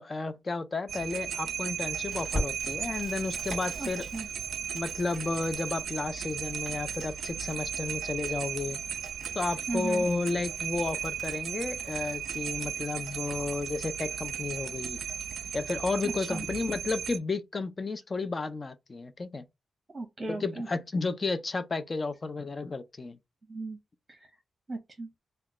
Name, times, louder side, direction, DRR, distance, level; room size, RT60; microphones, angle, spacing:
voice 1, 0.0-4.1 4.7-8.8 9.4-15.0 15.5-19.4 20.3-23.2, left 3 dB, 25° left, 0.4 m, -32 dB
sound 1, 0.9-17.2, right 8 dB, 80° right, 0.4 m, -36 dB
Crackle, 2.1-12.6, equal, ahead, 1.8 m, -43 dB
voice 2, 3.8-4.3 9.7-10.1 16.0-16.5 19.9-20.7 23.5-23.8 24.1-24.2 24.7-25.1, right 2 dB, 20° right, 0.9 m, -36 dB
3.0 x 2.2 x 3.6 m
wide cardioid pair, 175°, 0 cm